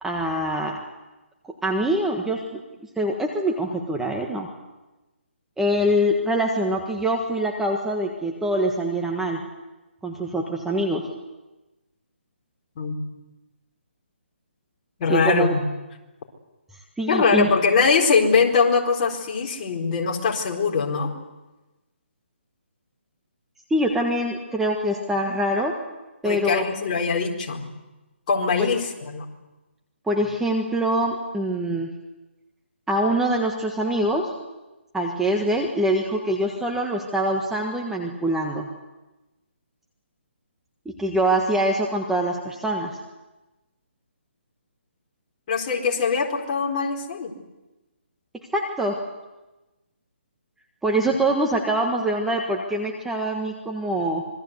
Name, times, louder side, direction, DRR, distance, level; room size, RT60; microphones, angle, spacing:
voice 1, 0.0-0.8 1.6-2.6 3.0-4.5 5.6-9.4 10.0-11.1 15.1-15.5 17.0-17.5 23.7-25.8 26.2-26.6 30.1-31.9 32.9-34.3 34.9-38.7 40.8-43.0 48.5-49.0 50.8-54.2, right 1 dB, 5° right, 1 dB, 1.5 m, -24 dB
voice 2, 12.8-13.1 15.0-15.6 17.1-21.1 26.2-27.6 28.3-29.3 45.5-47.3 51.1-51.2, left 5 dB, 35° left, 0 dB, 4.2 m, -22 dB
26.5 x 22.0 x 8.1 m, 1.1 s
hypercardioid pair, 155°, 7 cm